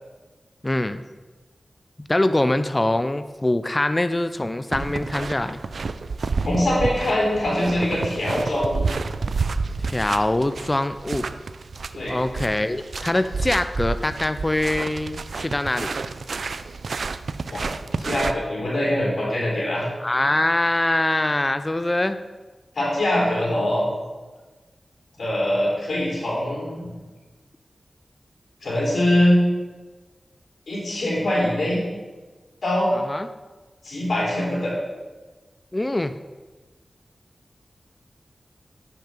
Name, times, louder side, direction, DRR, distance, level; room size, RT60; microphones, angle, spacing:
voice 1, 0.6-1.0 2.0-5.6 9.9-11.3 12.1-15.9 20.0-22.2 32.9-33.3 35.7-36.2, left 1 dB, 25° left, 11 dB, 0.4 m, -23 dB
sound 1, 4.7-18.3, right 4 dB, 80° right, 0.3 m, -30 dB
voice 2, 6.4-8.8 11.9-12.2 17.5-17.7 18.0-19.8 22.7-23.8 25.2-26.9 28.6-29.4 30.7-31.8 32.6-32.9 33.8-34.7, left 1 dB, 80° left, -5 dB, 3.0 m, -23 dB
9.1 x 5.5 x 5.2 m, 1.3 s
wide cardioid pair, 60°, 0 cm